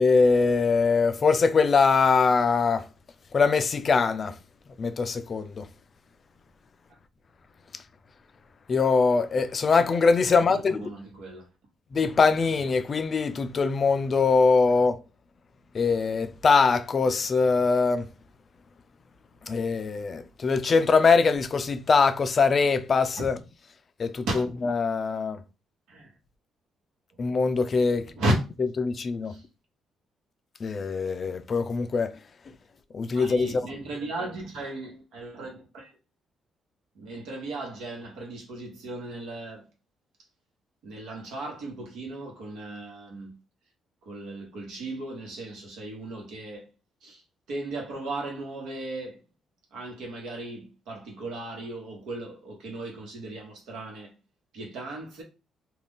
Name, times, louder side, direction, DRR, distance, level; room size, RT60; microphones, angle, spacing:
voice 1, 0.0-2.8 3.3-4.3 4.8-5.7 8.7-10.9 11.9-15.0 15.7-18.1 19.5-23.4 24.0-24.3 24.6-25.4 27.2-28.1 28.8-29.3 30.6-32.1 32.9-33.5, left 4 dB, 45° left, 0.3 m, -22 dB
voice 2, 10.3-11.5 23.2-23.3 24.3-24.5 25.9-26.1 28.1-28.3 29.2-29.4 33.1-35.9 36.9-39.6 40.8-43.4 44.0-46.7 47.0-47.2 47.5-49.2 49.7-54.1 54.5-55.2, right 2 dB, 85° right, 1.1 m, -35 dB
2.4 x 2.3 x 3.5 m
cardioid pair, 90°, 0 cm